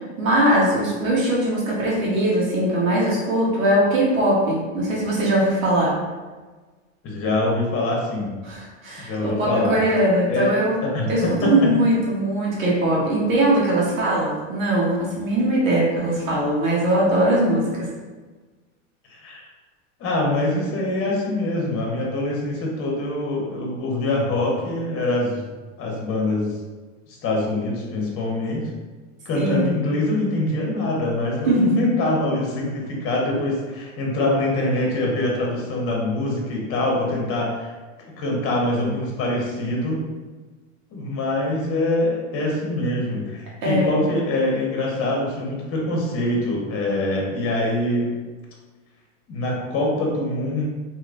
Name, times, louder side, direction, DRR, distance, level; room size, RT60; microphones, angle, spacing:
voice 1, 0.2-6.0 8.4-10.8 11.1-17.9 29.3-29.7 31.5-31.8 43.6-44.0, right 1 dB, 90° right, -5 dB, 1.1 m, -21 dB
voice 2, 7.0-8.3 9.0-9.8 10.3-10.5 10.8-11.7 19.1-19.4 20.0-25.5 25.8-26.6 27.1-28.7 29.2-37.7 38.1-40.0 40.9-48.1 49.3-50.7, left 1 dB, 35° left, -2 dB, 1.0 m, -24 dB
3.1 x 2.7 x 2.5 m, 1.3 s
hypercardioid pair, 110°, 39 cm